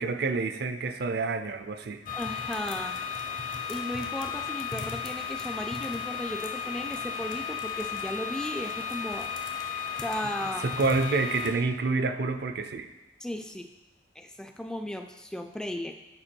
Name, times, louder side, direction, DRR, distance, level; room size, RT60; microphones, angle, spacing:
voice 1, 0.0-2.0 10.6-12.9, right 3 dB, 60° right, 9 dB, 0.5 m, -28 dB
sound 1, 2.1-11.5, left 6 dB, 50° left, 0.7 m, -34 dB
voice 2, 2.1-3.0 3.7-9.3 10.0-10.7 13.2-13.7 14.2-16.0, left 1 dB, 5° left, 5 dB, 0.3 m, -35 dB
7.7 x 4.4 x 4.5 m, 1.0 s
head